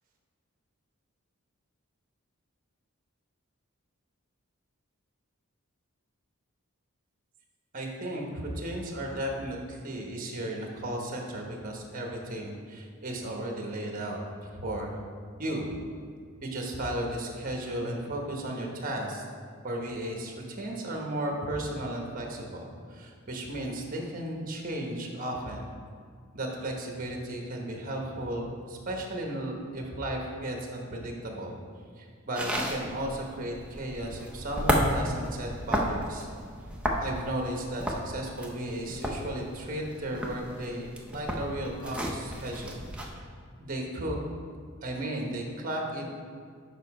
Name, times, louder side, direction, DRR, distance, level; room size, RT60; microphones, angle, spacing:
voice 1, 7.7-15.0 15.4-15.7 16.4-19.3 19.6-22.6 22.9-25.7 26.3-31.5 32.0-36.3 37.0-43.2 43.6-44.2 44.8-46.0, right 1 dB, 40° right, 1 dB, 1.0 m, -35 dB
sound 1, 32.3-43.1, equal, 5° right, 0.6 m, -32 dB
6.7 x 5.4 x 4.8 m, 2.1 s
head